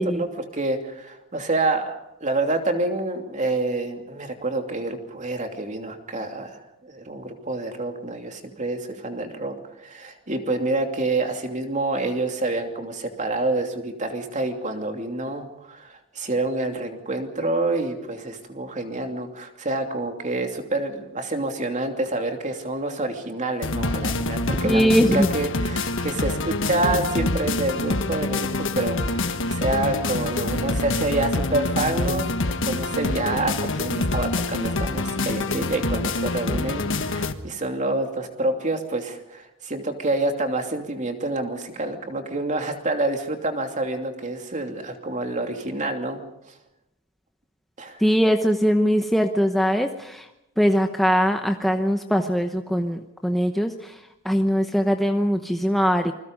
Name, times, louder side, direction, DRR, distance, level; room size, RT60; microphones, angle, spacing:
voice 1, 0.0-46.2 46.5-46.6 47.8-48.0, right 2 dB, 35° right, 5 dB, 2.8 m, -27 dB
sound 1, 23.6-37.3, left 2 dB, 60° left, 1.5 m, -26 dB
voice 2, 24.6-25.3 48.0-50.3 50.6-56.1, equal, ahead, 5 dB, 0.9 m, -21 dB
28.0 x 21.5 x 5.3 m, 0.88 s
head